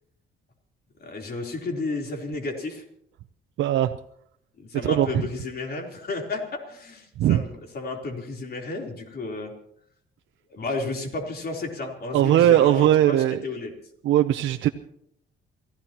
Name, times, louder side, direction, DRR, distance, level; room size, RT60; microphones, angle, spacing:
voice 1, 1.0-2.8 4.6-7.5 7.7-9.5 10.5-13.2 13.4-13.7, left 3 dB, 50° left, 2 dB, 3.7 m, -32 dB
voice 2, 3.6-3.9 4.8-5.2 7.2-7.4 12.1-13.4 14.0-14.7, right 12 dB, 75° right, 6 dB, 0.7 m, -19 dB
28.5 x 15.5 x 3.0 m, 0.70 s
cardioid pair, 90°, 20 cm